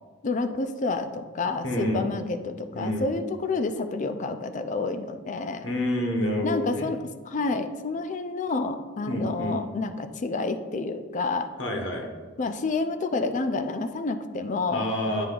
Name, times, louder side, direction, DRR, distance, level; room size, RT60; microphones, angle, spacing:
voice 1, 0.2-5.7 6.4-7.0 7.3-11.5 12.4-14.9, left 3 dB, 40° left, 9 dB, 0.4 m, -29 dB
voice 2, 1.6-2.1 2.7-3.1 5.6-6.9 9.1-9.6 11.6-12.1 14.7-15.3, left 1 dB, 65° left, 2 dB, 1.1 m, -28 dB
9.0 x 3.4 x 3.8 m, 1.4 s
head